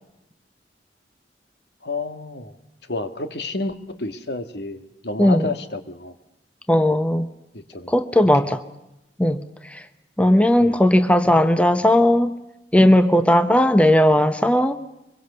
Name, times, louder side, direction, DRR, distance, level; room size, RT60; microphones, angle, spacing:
voice 1, 1.8-2.5 2.9-6.1 7.5-8.0 8.4-8.6 10.6-10.8, left 2 dB, 65° left, 10 dB, 1.6 m, -30 dB
voice 2, 6.7-7.3 7.9-8.6 9.2-9.4 9.7-9.8 10.2-12.3 12.7-14.8, left 1 dB, 5° left, 10 dB, 0.8 m, -17 dB
24.5 x 22.5 x 6.8 m, 0.91 s
head